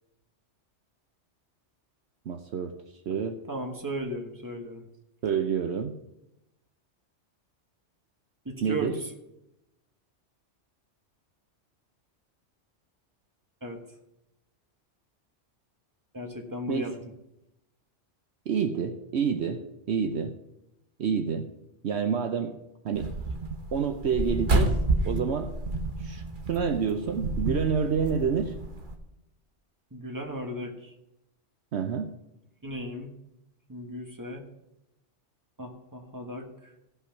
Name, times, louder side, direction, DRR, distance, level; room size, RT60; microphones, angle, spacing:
voice 1, 2.3-2.7 3.1-3.4 5.2-6.0 8.6-9.0 16.7-17.0 18.5-20.4 21.0-21.5 21.8-22.6 22.8-23.1 23.7-24.8 25.0-25.5 26.0-26.2 26.5-28.5 31.7-32.1, right 6 dB, 65° right, 6 dB, 1.0 m, -28 dB
voice 2, 3.5-4.8 8.4-9.1 13.6-13.8 16.1-16.9 29.9-30.9 32.6-33.1 33.7-34.5 35.6-36.7, equal, 15° right, 2 dB, 1.5 m, -36 dB
sound 1, 22.9-29.0, right 2 dB, 45° right, 1.2 m, -29 dB
15.5 x 5.6 x 5.9 m, 0.88 s
omnidirectional pair, 1.2 m